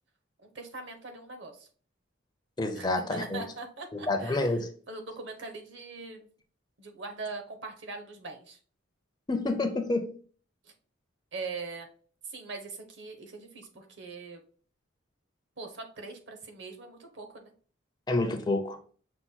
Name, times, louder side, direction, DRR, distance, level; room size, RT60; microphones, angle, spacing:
voice 1, 0.5-1.7 2.7-4.5 4.9-6.3 6.8-8.6 10.6-10.7 11.3-11.9 12.2-14.4 15.6-17.5, right 3 dB, 65° right, 4 dB, 0.9 m, -41 dB
voice 2, 2.6-3.4 4.1-4.7 9.3-10.1 18.1-18.8, left 2 dB, 20° left, 6 dB, 0.5 m, -28 dB
5.7 x 2.2 x 3.9 m, 0.43 s
head